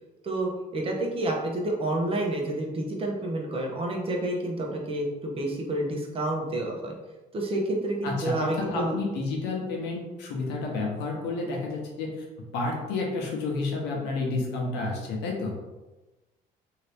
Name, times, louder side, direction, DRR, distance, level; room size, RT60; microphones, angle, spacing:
voice 1, 0.2-7.0 7.3-9.0, right 1 dB, 35° right, 0 dB, 0.8 m, -29 dB
voice 2, 8.0-12.1 12.5-15.6, left 3 dB, 85° left, 0 dB, 0.9 m, -30 dB
2.8 x 2.7 x 3.3 m, 1.1 s
cardioid pair, 110°, 17 cm